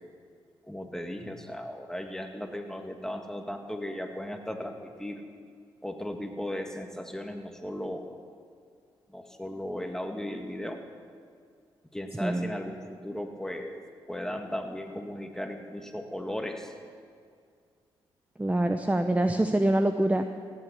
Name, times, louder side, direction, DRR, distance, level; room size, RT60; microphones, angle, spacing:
voice 1, 0.7-5.2 5.8-8.1 9.1-10.8 11.9-13.8 14.1-16.7, left 1 dB, 5° left, 4 dB, 2.1 m, -36 dB
voice 2, 18.4-20.2, right 1 dB, 15° right, 7 dB, 0.9 m, -25 dB
16.5 x 8.9 x 8.3 m, 2.2 s
hypercardioid pair, 45°, 11 cm